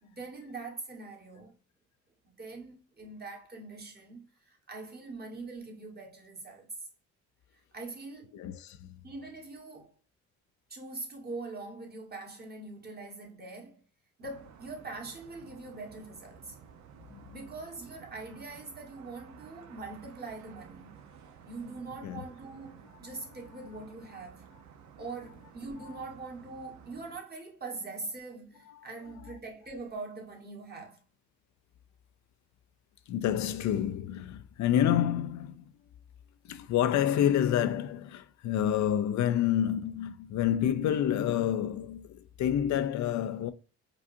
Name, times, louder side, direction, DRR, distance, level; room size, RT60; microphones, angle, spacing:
voice 1, 0.0-1.6 2.2-6.7 7.7-8.5 9.0-9.9 10.7-13.8 14.2-16.6 17.3-21.0 21.4-24.6 25.0-31.0, right 3 dB, 30° right, 1.4 m, -43 dB
voice 2, 8.3-9.0 17.1-17.2 22.0-22.3 23.1-23.2 25.8-26.0 28.7-28.9 29.2-29.4 33.1-35.6 36.4-43.5, left 10 dB, 65° left, 0.5 m, -28 dB
sound 1, 14.2-27.2, right 7 dB, 70° right, 0.8 m, -54 dB
5.0 x 2.4 x 2.6 m
cardioid pair, 90°, 30 cm